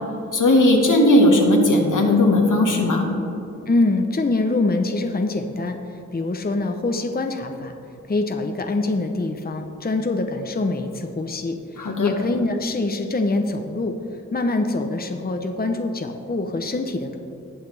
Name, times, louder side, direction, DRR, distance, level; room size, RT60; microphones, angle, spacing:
voice 1, 0.3-3.1 11.8-12.1, left 1 dB, 80° left, 1 dB, 1.5 m, -17 dB
voice 2, 3.7-5.8 6.1-7.7 8.1-13.9 14.3-17.2, left 2 dB, 30° left, 5 dB, 0.7 m, -24 dB
18.5 x 6.5 x 3.3 m, 2.9 s
wide cardioid pair, 70°, 31 cm